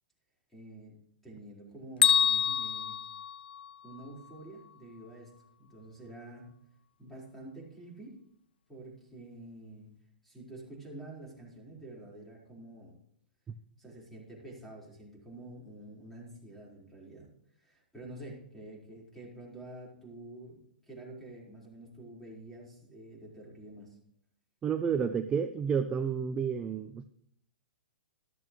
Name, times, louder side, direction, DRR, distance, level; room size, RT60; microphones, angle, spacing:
voice 1, 0.5-1.0 1.2-3.0 3.8-5.3 5.6-6.5 7.0-8.2 8.7-9.9 10.2-12.9 13.8-17.3 17.6-24.0, right 1 dB, 5° left, -3 dB, 4.4 m, -48 dB
Bell, 2.0-4.0, left 9 dB, 75° left, 0.5 m, -27 dB
voice 2, 24.6-27.0, right 7 dB, 20° right, 8 dB, 0.6 m, -30 dB
13.5 x 12.5 x 3.1 m, 0.68 s
hypercardioid pair, 120°, 5 cm